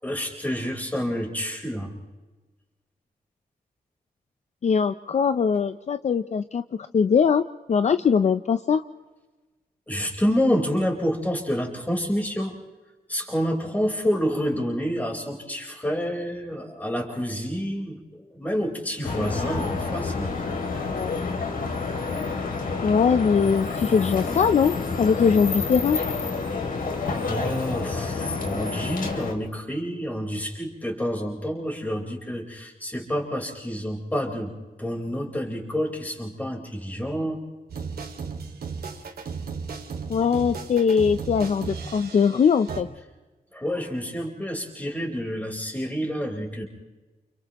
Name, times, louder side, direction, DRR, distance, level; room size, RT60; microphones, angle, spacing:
voice 1, 0.0-1.9 9.9-12.5 13.1-18.0 18.3-20.3 27.3-34.5 34.8-37.4 43.5-46.6, equal, 10° left, 0 dB, 4.2 m, -28 dB
voice 2, 4.6-8.8 20.4-20.6 20.9-21.1 22.8-26.0 40.1-42.9, left 6 dB, 45° left, 10 dB, 0.6 m, -21 dB
sound 1, 19.0-29.3, left 4 dB, 65° left, 2.9 m, -29 dB
sound 2, 37.7-42.8, right 5 dB, 85° right, 2.3 m, -35 dB
30.0 x 29.5 x 3.0 m, 1.2 s
wide cardioid pair, 170°, 16 cm